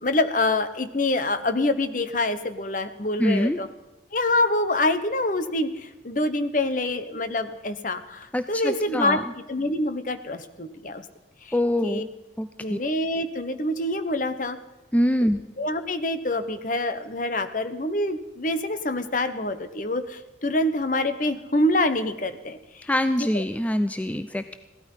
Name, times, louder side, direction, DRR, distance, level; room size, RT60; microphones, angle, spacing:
voice 1, 0.0-3.7 4.1-9.2 9.5-11.0 11.4-11.5 11.8-12.0 12.6-14.6 15.2-15.3 15.6-22.9 23.3-23.4, left 2 dB, 45° left, 10 dB, 1.1 m, -26 dB
voice 2, 3.2-3.6 8.3-9.2 11.5-12.1 12.4-12.8 14.9-15.4 22.8-24.6, left 1 dB, 10° left, 10 dB, 0.4 m, -24 dB
16.5 x 12.5 x 5.6 m, 1.1 s
head